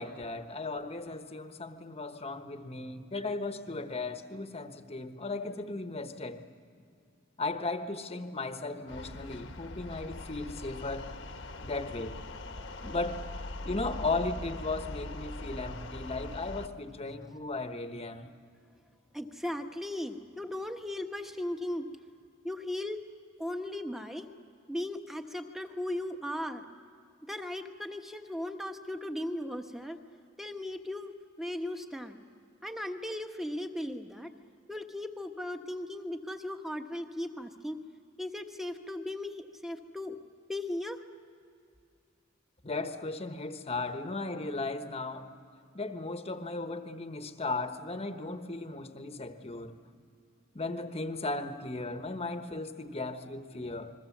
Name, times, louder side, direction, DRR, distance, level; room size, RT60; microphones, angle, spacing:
voice 1, 0.0-6.4 7.4-11.1 11.6-12.2 12.8-13.2 13.6-18.3 42.6-45.3 45.7-49.8 50.5-53.9, left 3 dB, 30° left, 8 dB, 1.2 m, -36 dB
sound 1, 8.9-16.7, left 2 dB, 65° left, 1.3 m, -41 dB
voice 2, 19.1-21.8 22.4-23.0 23.4-24.3 24.7-26.6 27.3-30.0 30.4-32.2 32.6-34.3 34.7-37.8 38.2-40.2 40.5-41.0, left 1 dB, ahead, 5 dB, 1.2 m, -37 dB
29.0 x 21.5 x 7.3 m, 2.4 s
head